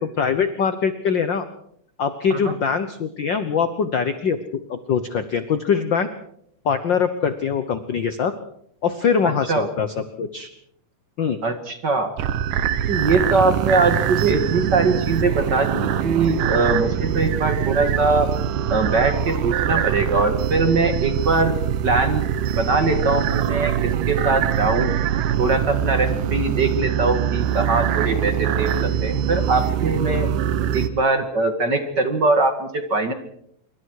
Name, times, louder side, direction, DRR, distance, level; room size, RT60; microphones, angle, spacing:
voice 1, 0.0-1.5 2.0-6.1 6.6-8.3 8.8-9.9 10.2-10.5 11.2-11.4, left 6 dB, 60° left, 10 dB, 1.2 m, -23 dB
voice 2, 9.2-9.7 11.4-12.1 12.9-18.3 18.7-21.5 21.8-23.7 24.1-24.9 25.4-30.3 30.7-33.1, right 3 dB, 40° right, 7 dB, 2.2 m, -21 dB
sound 1, 12.2-30.9, right 10 dB, 85° right, 2.8 m, -23 dB
26.5 x 24.0 x 4.8 m, 0.70 s
omnidirectional pair, 3.6 m